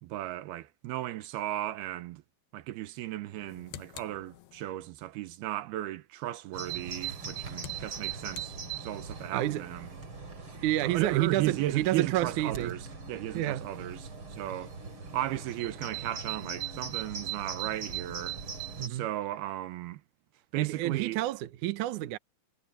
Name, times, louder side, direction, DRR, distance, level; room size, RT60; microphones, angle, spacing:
voice 1, 0.0-2.2 2.5-9.9 10.8-14.8 15.1-18.4 18.9-20.0 20.5-21.2, right 14 dB, 85° right, 2.9 m, -35 dB
sound 1, 3.3-4.9 6.9-9.2, left 12 dB, 85° left, 3.1 m, -50 dB
Bird vocalization bird call bird song, 6.5-18.9, right 6 dB, 35° right, 4.7 m, -40 dB
voice 2, 9.3-9.6 10.6-12.7 13.3-13.7 18.8-19.1 20.6-22.2, right 14 dB, 70° right, 2.2 m, -29 dB
omnidirectional pair, 4.4 m